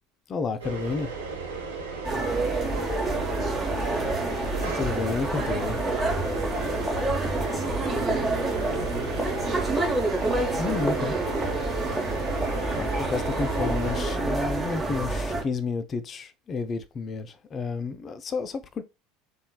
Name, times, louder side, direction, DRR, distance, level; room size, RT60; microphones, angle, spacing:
voice 1, 0.3-1.1 4.2-4.3 4.6-5.8 10.6-11.1 12.3-18.8, left 4 dB, 30° left, 0.3 m, -31 dB
sound 1, 0.6-14.2, right 4 dB, 75° right, 0.6 m, -35 dB
sound 2, 2.0-15.4, right 2 dB, 10° right, 0.9 m, -28 dB
voice 2, 2.1-3.6 4.7-4.9 7.9-11.4, right 6 dB, 35° right, 0.4 m, -37 dB
3.1 x 2.2 x 2.2 m
figure-of-eight pair, 75°, 0 cm